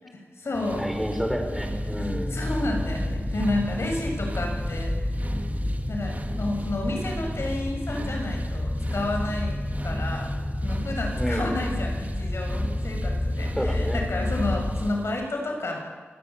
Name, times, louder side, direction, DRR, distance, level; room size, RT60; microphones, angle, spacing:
voice 1, 0.0-0.9 1.9-5.0 5.9-10.3 10.6-15.8, left 2 dB, 75° left, 2 dB, 7.5 m, -31 dB
sound 1, 0.5-15.1, right 1 dB, 35° right, 2.6 m, -37 dB
sound 2, 0.7-14.8, left 1 dB, 15° left, 1.3 m, -30 dB
voice 2, 0.8-2.5 11.2-11.5 13.3-14.0, equal, ahead, 4 dB, 5.7 m, -30 dB
27.0 x 19.0 x 8.5 m, 1.4 s
wide cardioid pair, 60°, 5 cm